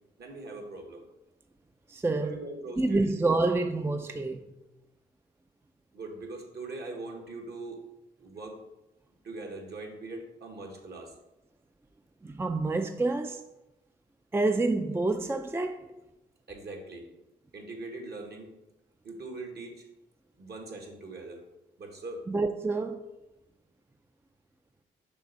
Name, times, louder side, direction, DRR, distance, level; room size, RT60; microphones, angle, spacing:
voice 1, 0.2-1.1 2.2-3.1 5.9-7.8 8.2-8.6 9.2-11.1 16.5-17.1 17.5-18.5 19.0-19.8 20.4-21.4 21.8-22.2, right 2 dB, 55° right, 1.6 m, -41 dB
voice 2, 1.9-2.4 2.8-4.4 12.2-13.4 14.3-15.8 22.3-23.0, right 3 dB, 10° right, 0.4 m, -28 dB
6.2 x 3.3 x 5.9 m
supercardioid pair, 55°, 20 cm